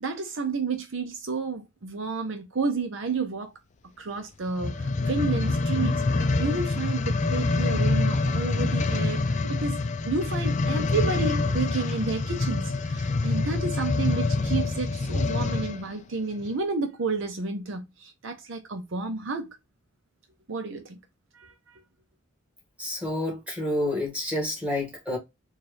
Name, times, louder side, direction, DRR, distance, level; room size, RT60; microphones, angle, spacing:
voice 1, 0.0-3.5 4.0-9.8 10.0-19.6 20.5-21.0 21.3-21.8, right 4 dB, 65° right, 0.6 m, -31 dB
sound 1, 4.5-15.8 16.4-16.5, left 3 dB, 35° left, 0.4 m, -26 dB
voice 2, 22.8-25.2, left 1 dB, 5° right, 1.9 m, -29 dB
4.3 x 2.4 x 3.3 m
head